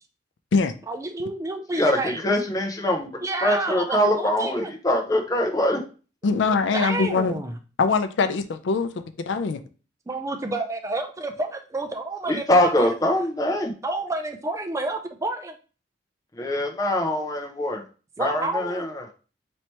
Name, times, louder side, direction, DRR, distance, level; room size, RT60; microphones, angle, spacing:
voice 1, 0.9-2.2 3.2-4.7 6.7-7.5 10.1-12.9 13.8-15.5 18.2-18.8, right 2 dB, 15° right, 6 dB, 0.3 m, -29 dB
voice 2, 1.7-5.8 12.3-13.7 16.4-17.8 18.2-19.0, left 1 dB, 20° left, 1 dB, 0.6 m, -23 dB
voice 3, 6.2-7.4 7.8-8.9 9.3-9.6, left 4 dB, 75° left, 9 dB, 0.4 m, -22 dB
3.1 x 2.9 x 4.4 m, 0.35 s
head